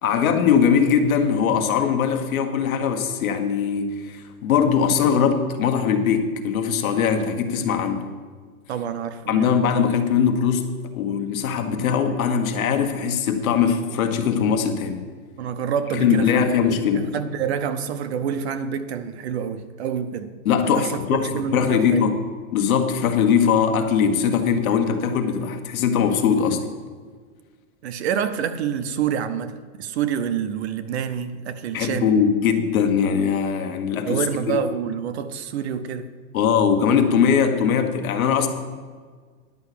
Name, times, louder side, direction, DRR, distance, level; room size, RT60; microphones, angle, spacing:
voice 1, 0.0-8.1 9.3-15.0 15.9-17.1 20.4-21.3 21.5-22.2 22.5-26.6 31.7-34.6 36.3-38.5, left 7 dB, 65° left, 7 dB, 1.5 m, -21 dB
voice 2, 8.7-9.5 15.4-16.5 16.9-20.3 20.6-22.0 27.8-32.1 34.1-36.1, right 8 dB, 45° right, 10 dB, 0.7 m, -27 dB
10.5 x 5.7 x 8.3 m, 1.5 s
supercardioid pair, 165°, 44 cm